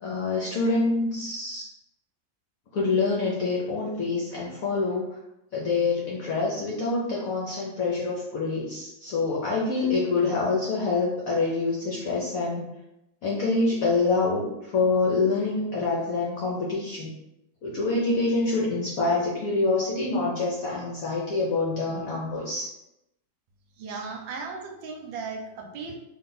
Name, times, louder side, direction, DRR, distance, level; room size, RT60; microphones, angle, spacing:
voice 1, 0.0-1.7 2.7-5.1 5.5-12.7 13.2-17.1 17.6-22.7, left 3 dB, 65° left, -4 dB, 0.9 m, -26 dB
voice 2, 23.8-25.9, right 4 dB, 75° right, 2 dB, 1.3 m, -36 dB
3.2 x 2.6 x 3.9 m, 0.87 s
omnidirectional pair, 2.2 m